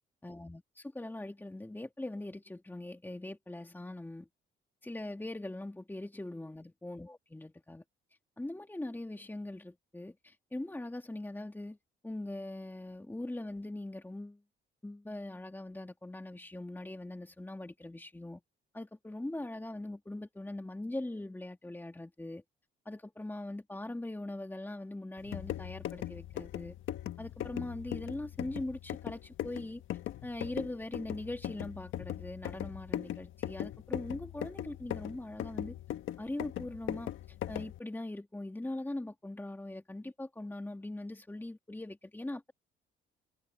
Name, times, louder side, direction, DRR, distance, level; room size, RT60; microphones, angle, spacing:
voice 1, 0.2-4.3 4.8-7.8 8.4-11.8 12.0-14.4 14.8-18.4 18.7-22.4 22.8-26.8 27.2-29.8 30.2-35.8 36.2-42.5, left 1 dB, 10° left, 2.4 m, -41 dB
sound 1, 25.2-37.8, left 12 dB, 80° left, 1.5 m, -40 dB
cardioid pair, 90°, 20 cm